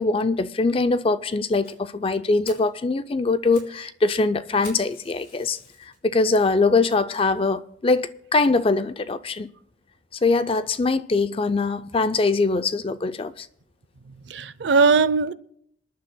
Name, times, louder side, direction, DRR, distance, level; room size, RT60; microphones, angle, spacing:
voice 1, 0.0-9.5 10.2-13.5, left 3 dB, 30° left, 0.4 m, -22 dB
Fire, 1.6-1.8 2.2-2.3 2.4-2.7 3.3-3.8 4.0-4.1 4.6-6.0 6.5-6.6 7.2-7.3 7.6-7.7 8.0-8.1, left 3 dB, 50° left, 3.8 m, -46 dB
voice 2, 14.1-15.3, right 4 dB, 70° right, 0.6 m, -20 dB
27.0 x 10.0 x 2.2 m
head